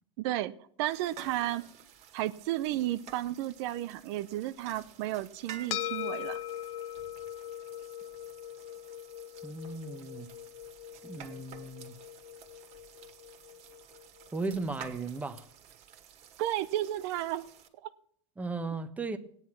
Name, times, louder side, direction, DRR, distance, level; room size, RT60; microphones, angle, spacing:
voice 1, 0.2-0.5 0.8-1.6 2.1-6.4 16.4-17.5, right 14 dB, 55° right, 0.7 m, -33 dB
sound 1, 0.9-17.7, right 8 dB, 40° right, 2.1 m, -52 dB
sound 2, 5.7-14.3, left 12 dB, 65° left, 0.7 m, -41 dB
voice 2, 9.4-10.3 11.0-11.9 14.3-15.4 18.4-19.2, right 3 dB, 10° right, 1.1 m, -36 dB
15.5 x 9.8 x 6.1 m
supercardioid pair, 130°, 16 cm